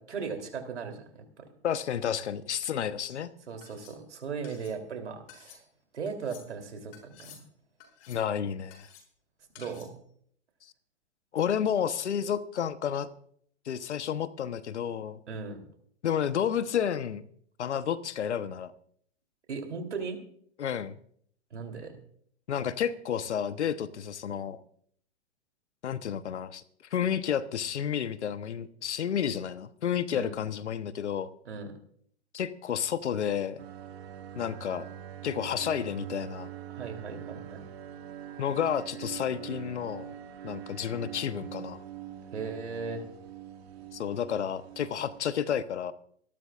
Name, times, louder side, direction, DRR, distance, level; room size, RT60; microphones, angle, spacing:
voice 1, 0.0-1.5 3.5-5.6 5.9-7.4 9.6-10.0 15.3-15.6 19.5-20.2 21.5-22.0 30.1-30.3 31.5-31.7 36.7-37.6 42.3-43.0, right 5 dB, 80° right, 5 dB, 3.4 m, -37 dB
voice 2, 1.6-3.3 8.1-8.9 11.3-13.1 13.7-15.2 16.0-17.2 17.6-18.7 20.6-21.0 22.5-24.6 25.8-26.6 26.9-31.3 32.3-33.6 34.4-34.9 35.2-36.5 38.4-40.1 40.4-41.8 43.9-45.9, left 8 dB, 75° left, 13 dB, 1.1 m, -31 dB
sound 1, 3.1-3.2 3.6-4.0 4.4-4.8 5.3-5.6 6.1-6.5 6.9-7.4 7.8-8.3 8.7-9.1 9.6-10.0, left 8 dB, 45° left, 7.0 m, -52 dB
sound 2, 33.6-45.2, right 11 dB, 65° right, 2.1 m, -43 dB
25.5 x 12.5 x 2.5 m, 0.63 s
hypercardioid pair, 115°, 34 cm